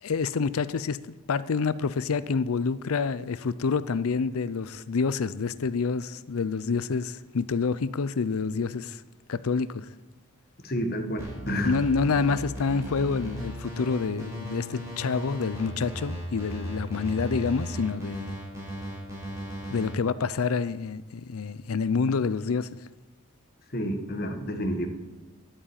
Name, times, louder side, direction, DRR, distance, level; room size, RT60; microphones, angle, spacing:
voice 1, 0.0-9.0 9.3-9.9 11.6-18.4 19.7-22.7, left 5 dB, 85° left, 0.5 m, -28 dB
voice 2, 10.6-11.7 23.7-24.9, equal, 45° left, 1.4 m, -29 dB
sound 1, 11.2-19.9, equal, 15° right, 5.6 m, -36 dB
11.5 x 8.9 x 8.8 m
head